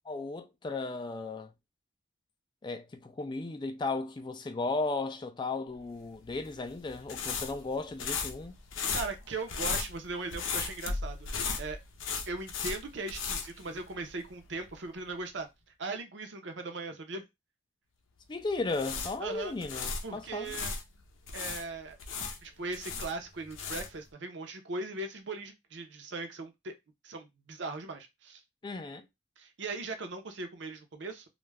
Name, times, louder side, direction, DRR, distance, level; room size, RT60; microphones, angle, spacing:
voice 1, 0.1-1.5 2.6-8.5 18.3-20.5 28.6-29.1, left 3 dB, 25° left, 0.3 m, -35 dB
sound 1, 6.2-14.3 14.6-14.7 18.5-20.8 21.3-24.1, left 5 dB, 90° left, 0.5 m, -36 dB
voice 2, 8.9-11.8 12.3-15.5 15.8-17.2 19.2-19.5 20.0-20.7 21.3-22.0 22.4-26.7 27.0-28.4 29.4-31.3, right 3 dB, 65° right, 0.6 m, -39 dB
2.3 x 2.1 x 3.2 m
head